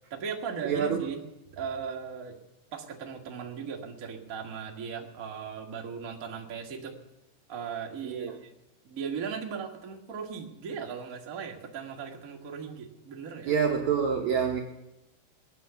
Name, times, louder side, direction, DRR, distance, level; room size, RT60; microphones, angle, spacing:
voice 1, 0.1-1.2 1.5-2.3 2.7-6.9 7.5-8.5 8.8-13.6, right 6 dB, 55° right, 0 dB, 0.9 m, -37 dB
voice 2, 0.6-1.1 8.0-8.4 13.4-14.6, right 7 dB, 70° right, 1 dB, 1.7 m, -27 dB
20.0 x 9.6 x 7.0 m, 0.94 s
omnidirectional pair, 4.7 m